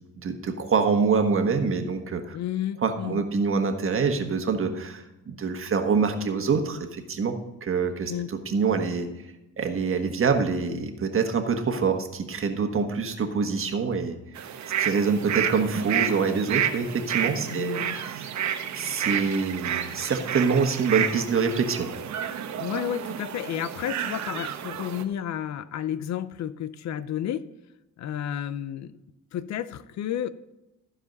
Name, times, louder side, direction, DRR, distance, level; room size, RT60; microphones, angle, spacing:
voice 1, 0.2-2.4 2.8-9.1 9.6-14.2 14.8-18.3 18.7-21.9, right 5 dB, 45° right, 5 dB, 1.5 m, -25 dB
voice 2, 2.3-3.2 8.1-8.3 17.5-18.0 22.6-27.5 28.0-28.9 29.3-30.3, left 10 dB, 65° left, 15 dB, 0.6 m, -31 dB
sound 1, 14.4-25.0, right 9 dB, 70° right, 1.0 m, -30 dB
15.0 x 4.9 x 5.3 m, 0.95 s
cardioid pair, 90°, 30 cm